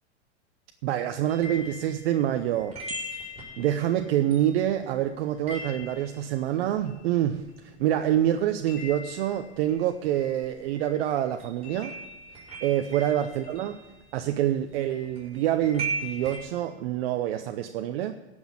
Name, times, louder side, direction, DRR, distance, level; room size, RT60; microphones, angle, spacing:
voice 1, 0.8-3.1 3.6-11.9 12.6-13.8 14.1-18.1, right 11 dB, 60° right, 7 dB, 0.8 m, -26 dB
sound 1, 1.3-7.9 8.1-16.4, right 2 dB, 20° right, 5.3 m, -40 dB
17.5 x 6.4 x 7.2 m, 1.1 s
hypercardioid pair, 115°, 35 cm